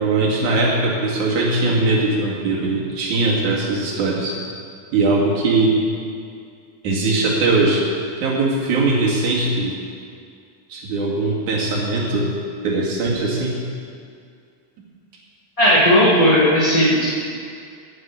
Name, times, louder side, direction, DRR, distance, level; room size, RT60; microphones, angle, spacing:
voice 1, 0.0-4.4 4.9-5.8 6.8-7.9 8.2-9.8 10.7-12.3 12.6-13.5, right 3 dB, 70° right, -4 dB, 3.7 m, -20 dB
voice 2, 15.6-17.0, equal, 10° left, -11 dB, 2.0 m, -15 dB
9.8 x 9.5 x 9.5 m, 2.3 s
omnidirectional pair, 3.7 m